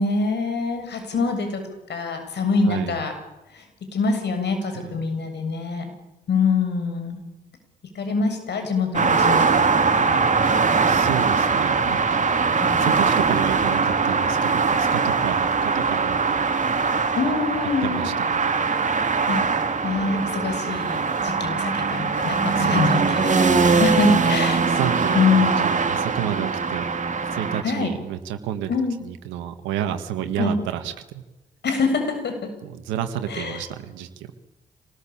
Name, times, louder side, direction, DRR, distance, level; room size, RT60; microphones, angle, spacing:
voice 1, 0.0-1.6 1.9-3.2 3.5-3.6 3.9-5.9 6.3-7.2 8.0-10.8 12.6-13.0 17.2-18.2 19.3-19.5 19.8-24.6 25.1-25.6 27.6-27.9 28.7-29.0 30.4-30.5 31.6-32.3 33.3-33.6, left 4 dB, 65° left, 6 dB, 7.4 m, -25 dB
sound 1, 8.9-27.6, right 5 dB, 40° right, 3.1 m, -21 dB
voice 2, 10.8-12.2 12.8-16.4 17.8-18.5 22.6-23.1 24.1-24.2 24.7-26.8 27.3-28.7 29.0-31.2 32.6-34.3, right 10 dB, 80° right, 8 dB, 1.8 m, -30 dB
27.0 x 19.5 x 8.8 m, 1.0 s
hypercardioid pair, 40°, 19 cm